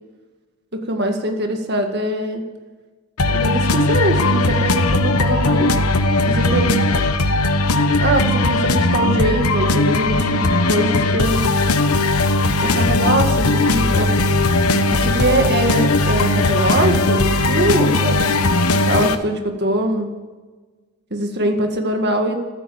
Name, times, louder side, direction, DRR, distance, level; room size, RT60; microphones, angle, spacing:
voice 1, 0.7-2.4 3.3-5.7 6.3-6.8 8.0-11.5 12.6-14.1 14.9-18.3 18.9-20.1 21.1-22.4, right 1 dB, 50° right, 4 dB, 1.9 m, -22 dB
sound 1, 3.2-19.1, left 2 dB, 90° left, 1.2 m, -18 dB
15.0 x 13.0 x 7.1 m, 1.3 s
head